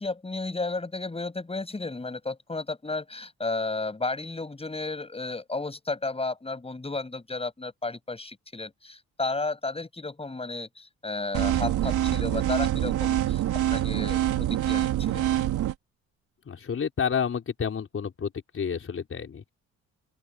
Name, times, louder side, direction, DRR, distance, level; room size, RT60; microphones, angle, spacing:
voice 1, 0.0-13.4 13.7-15.2, left 3 dB, 20° left, 7.2 m, -33 dB
sound 1, 11.3-15.7, right 12 dB, 80° right, 4.1 m, -25 dB
voice 2, 16.4-19.5, left 7 dB, 45° left, 4.7 m, -30 dB
open air
cardioid pair, 90°, 30 cm